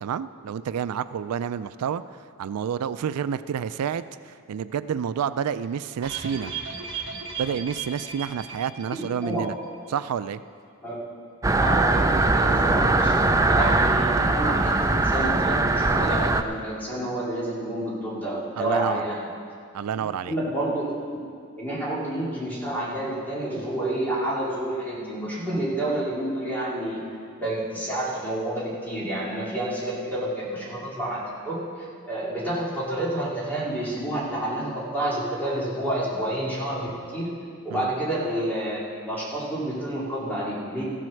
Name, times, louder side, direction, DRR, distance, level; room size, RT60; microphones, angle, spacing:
voice 1, 0.0-2.0 2.4-6.5 7.4-9.6 9.9-10.4 18.6-19.0 19.7-20.4 37.7-37.9, right 8 dB, 90° right, 14 dB, 0.4 m, -29 dB
sound 1, 6.0-9.5 9.7-9.8 10.2-10.3, right 6 dB, 55° right, 1.4 m, -36 dB
voice 2, 8.9-9.4 10.8-10.9 11.5-13.1 13.5-19.2 20.0-20.9 21.6-27.0 27.4-37.3 37.6-38.8 39.1-40.8, right 1 dB, 10° left, -7 dB, 2.7 m, -29 dB
sound 2, 11.4-16.4, right 2 dB, 15° right, 0.3 m, -21 dB
14.5 x 7.6 x 6.4 m, 2.3 s
head